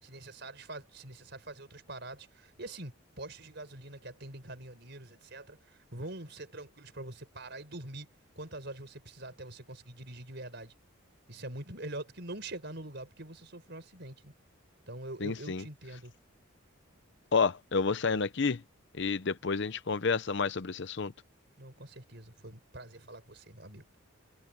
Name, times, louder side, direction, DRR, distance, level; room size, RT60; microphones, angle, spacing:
voice 1, 0.0-10.7 11.3-14.3 14.9-16.1 21.6-23.8, right 2 dB, 50° right, 5.1 m, -44 dB
voice 2, 15.2-15.6 17.3-18.6 18.9-21.1, left 4 dB, 55° left, 0.6 m, -30 dB
head